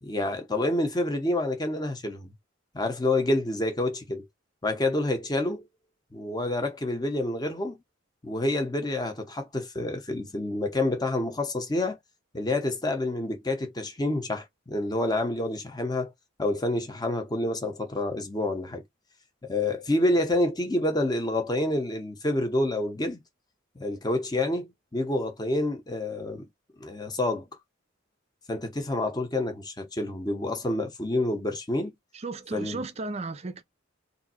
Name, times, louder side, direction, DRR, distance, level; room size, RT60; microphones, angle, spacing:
voice 1, 0.0-2.3 2.7-4.3 4.6-5.6 6.1-7.8 8.2-12.0 12.3-16.1 16.4-18.8 19.4-23.2 23.7-26.5 26.8-27.5 28.5-31.9 32.5-32.9, left 1 dB, 20° left, 0.9 m, -28 dB
voice 2, 32.1-33.6, right 3 dB, 30° right, 0.5 m, -34 dB
3.5 x 2.7 x 4.2 m
head